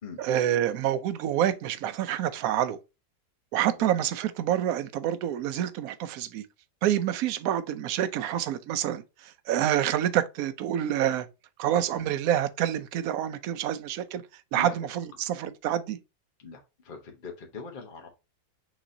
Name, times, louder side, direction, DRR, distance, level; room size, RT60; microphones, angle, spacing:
voice 1, 0.2-2.8 3.5-6.4 6.8-11.3 11.6-14.2 14.5-16.0, right 11 dB, 70° right, 0.9 m, -27 dB
voice 2, 16.4-18.1, left 4 dB, 35° left, 0.9 m, -41 dB
6.1 x 2.9 x 2.6 m
omnidirectional pair, 1.8 m